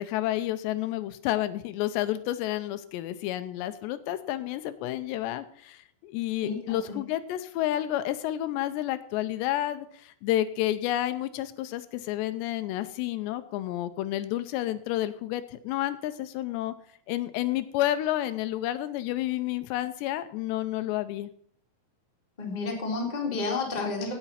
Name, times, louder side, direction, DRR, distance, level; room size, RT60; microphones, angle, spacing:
voice 1, 0.0-16.7 17.1-21.3, left 13 dB, 85° left, 11 dB, 2.9 m, -30 dB
voice 2, 6.4-7.0 22.4-24.1, left 4 dB, 15° left, -1 dB, 1.5 m, -31 dB
16.5 x 5.9 x 5.7 m, 0.62 s
omnidirectional pair, 4.9 m